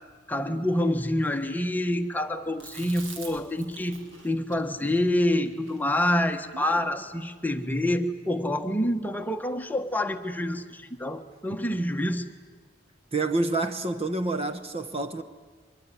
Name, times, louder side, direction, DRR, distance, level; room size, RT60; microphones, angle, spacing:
voice 1, 0.3-4.0 4.2-12.3, left 1 dB, 10° left, 1.4 m, -27 dB
Chewing mastication, 2.6-7.0, right 3 dB, 80° right, 3.8 m, -46 dB
voice 2, 13.1-15.2, right 2 dB, 30° right, 1.2 m, -28 dB
24.0 x 21.5 x 10.0 m
head